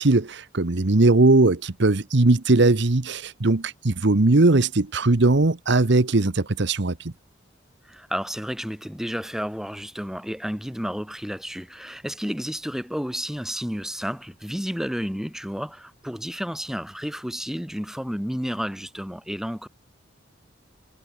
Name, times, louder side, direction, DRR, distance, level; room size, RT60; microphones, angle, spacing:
voice 1, 0.0-7.1, right 2 dB, 65° right, 1.1 m, -19 dB
voice 2, 7.8-19.7, equal, 5° right, 1.9 m, -31 dB
head